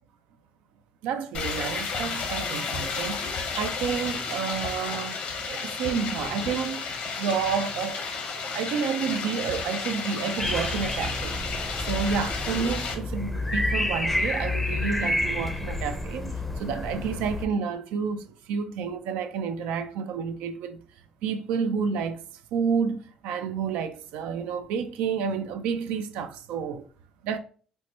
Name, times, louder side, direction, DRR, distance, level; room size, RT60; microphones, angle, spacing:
voice 1, 1.0-5.2 5.5-6.8 7.1-8.0 8.3-11.4 11.8-20.8 21.2-22.2 22.5-26.9 27.2-27.4, right 6 dB, 85° right, 0.4 m, -30 dB
sound 1, 1.3-12.9, left 5 dB, 70° left, 0.8 m, -32 dB
sound 2, 10.4-17.5, left 1 dB, 5° left, 0.5 m, -29 dB
4.3 x 2.1 x 2.8 m
supercardioid pair, 75°, 2 cm